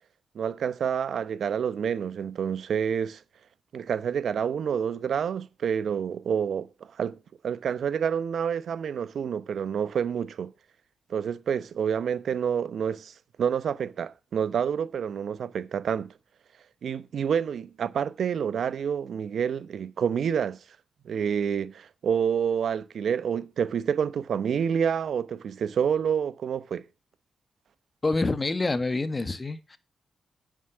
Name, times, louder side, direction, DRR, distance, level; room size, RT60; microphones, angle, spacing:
voice 1, 0.3-3.2 3.7-6.7 7.0-7.2 7.4-10.5 11.1-16.1 16.8-20.6 21.0-26.8, right 7 dB, 70° right, 0.9 m, -28 dB
voice 2, 28.0-29.8, left 3 dB, 25° left, 1.4 m, -27 dB
9.5 x 7.6 x 6.1 m
cardioid pair, 80°, 0 cm